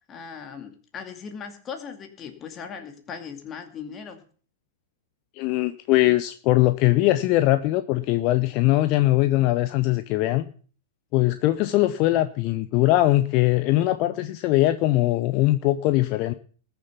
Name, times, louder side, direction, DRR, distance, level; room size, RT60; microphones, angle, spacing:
voice 1, 0.0-4.2, left 6 dB, 25° left, 5 dB, 2.4 m, -38 dB
voice 2, 5.4-10.4 11.1-16.3, left 16 dB, 40° left, 11 dB, 0.7 m, -21 dB
20.0 x 7.0 x 5.6 m, 0.43 s
figure-of-eight pair, 100°, 0 cm